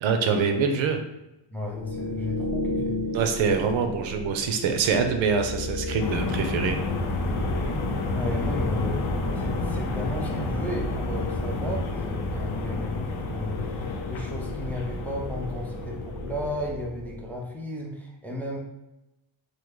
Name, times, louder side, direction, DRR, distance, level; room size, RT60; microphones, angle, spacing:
voice 1, 0.0-1.0 3.1-6.8, right 5 dB, 80° right, 6 dB, 0.6 m, -24 dB
voice 2, 1.5-3.0 8.1-18.6, left 1 dB, 5° left, -1 dB, 0.4 m, -34 dB
sound 1, 1.7-17.5, left 1 dB, 65° left, 1.0 m, -35 dB
sound 2, 6.0-16.9, left 2 dB, 90° left, 0.6 m, -30 dB
3.1 x 2.1 x 3.6 m, 0.94 s
cardioid pair, 115°, 47 cm